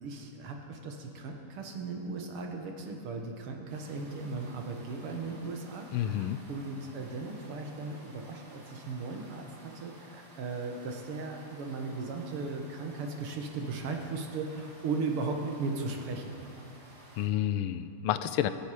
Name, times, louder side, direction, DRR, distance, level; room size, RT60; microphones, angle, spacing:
voice 1, 0.0-16.3, right 3 dB, 85° right, 3 dB, 2.3 m, -37 dB
sound 1, 3.7-17.3, right 1 dB, 50° right, 2.6 m, -54 dB
voice 2, 5.9-6.4 17.2-18.5, left 11 dB, 90° left, 12 dB, 1.6 m, -30 dB
23.5 x 8.9 x 5.0 m, 2.6 s
omnidirectional pair, 2.4 m